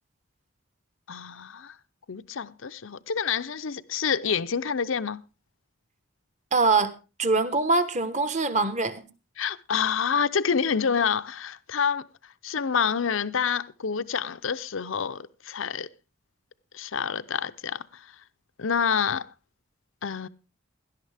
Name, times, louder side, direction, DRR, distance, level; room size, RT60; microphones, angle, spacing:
voice 1, 1.1-1.7 2.1-5.2 9.4-12.0 12.4-15.9 16.7-17.8 18.6-19.3 20.0-20.3, left 6 dB, 70° left, 0.6 m, -27 dB
voice 2, 6.5-6.9 7.2-9.0, right 3 dB, 35° right, 1.2 m, -23 dB
17.5 x 12.0 x 3.4 m
head